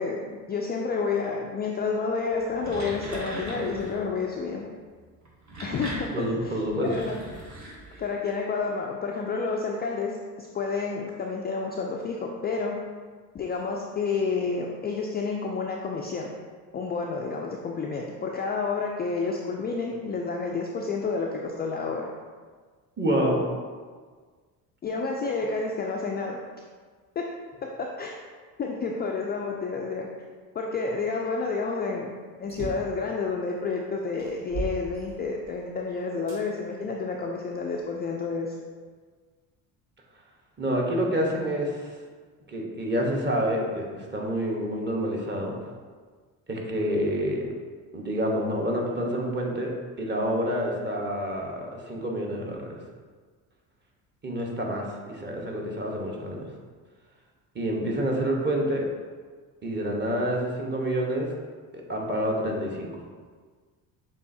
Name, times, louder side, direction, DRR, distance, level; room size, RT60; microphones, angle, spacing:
voice 1, 0.0-4.7 5.6-7.2 8.0-12.8 13.3-16.3 16.7-22.1 24.8-26.4 27.2-27.3 27.6-28.2 28.6-30.1 30.5-32.1 32.4-38.6, left 4 dB, 25° left, -1 dB, 0.3 m, -30 dB
sound 1, 2.4-4.1 5.2-8.3, right 1 dB, 40° right, 1.4 m, -39 dB
voice 2, 6.1-6.9 23.0-23.4 40.6-42.0 42.5-45.5 46.5-47.5 47.9-49.7 50.0-52.8 54.2-56.5 57.5-58.9 59.6-61.3 61.7-62.9, equal, 25° right, -1 dB, 1.1 m, -28 dB
sound 2, 32.4-33.0 33.7-33.8 34.2-35.6 36.3-36.4 37.2-38.2, right 3 dB, 75° right, 1.4 m, -37 dB
6.8 x 2.5 x 2.7 m, 1.5 s
hypercardioid pair, 70°, 43 cm